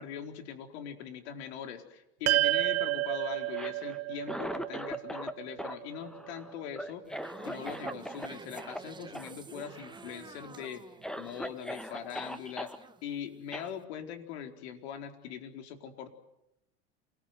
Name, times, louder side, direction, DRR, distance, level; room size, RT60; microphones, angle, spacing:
voice 1, 0.0-10.8 11.2-12.7 13.0-16.1, left 8 dB, 75° left, 6 dB, 4.3 m, -42 dB
sound 1, 2.3-6.7, right 19 dB, 50° right, 1.0 m, -31 dB
Cough, 3.4-5.3 5.6-8.3 8.6-8.8 9.1-9.3 9.6-10.1 10.6-10.7 11.0-12.8 13.5-13.7, equal, ahead, 1.5 m, -40 dB
sound 2, 7.1-13.3 13.6-13.8, right 5 dB, 15° right, 1.2 m, -48 dB
28.5 x 20.5 x 9.5 m, 0.86 s
supercardioid pair, 120°, 33 cm